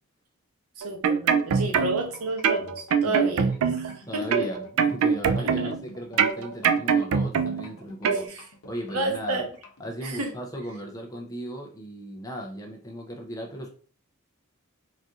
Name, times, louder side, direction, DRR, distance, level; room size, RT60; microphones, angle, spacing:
sound 1, 0.8-2.1 2.4-4.0 4.3-5.8 6.2-7.7 8.0-8.2, right 6 dB, 70° right, 0.3 m, -23 dB
voice 1, 0.8-4.5 5.4-5.7 8.1-8.4 8.9-9.5 10.0-10.3, right 2 dB, 85° right, 4 dB, 0.8 m, -31 dB
sound 2, 1.9-9.8, left 3 dB, 80° left, 0.7 m, -49 dB
voice 2, 3.0-3.6 4.1-9.4 9.8-13.7, equal, 15° left, 1 dB, 0.5 m, -37 dB
4.0 x 2.5 x 2.3 m, 0.42 s
head